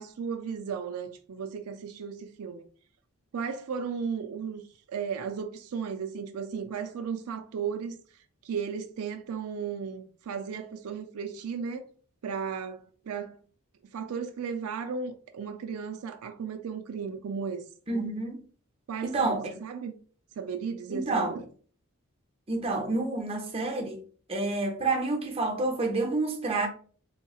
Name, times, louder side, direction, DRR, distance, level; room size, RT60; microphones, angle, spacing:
voice 1, 0.0-2.7 3.3-4.6 4.9-8.0 8.4-11.9 12.2-13.4 13.9-17.7 18.9-19.9 20.4-21.5, right 6 dB, 80° right, 0.4 m, -35 dB
voice 2, 17.9-18.4 19.0-19.6 20.9-21.4 22.5-24.0 24.3-26.7, right 3 dB, 25° right, 0.6 m, -29 dB
3.5 x 3.0 x 2.3 m
head